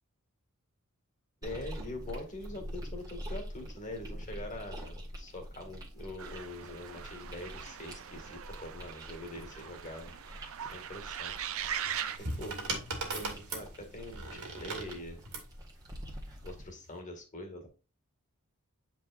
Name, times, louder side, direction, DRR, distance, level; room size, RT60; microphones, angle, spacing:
voice 1, 1.4-10.1 10.6-11.5 12.2-12.6 13.1-15.2 16.4-17.7, left 1 dB, 35° left, 3 dB, 2.0 m, -44 dB
sound 1, 1.4-16.7, equal, 15° right, 1.7 m, -46 dB
sound 2, 6.2-12.2, right 9 dB, 65° right, 0.5 m, -40 dB
sound 3, 11.8-15.5 16.6-16.9, right 2 dB, 85° right, 2.1 m, -38 dB
8.7 x 4.6 x 2.5 m, 0.33 s
head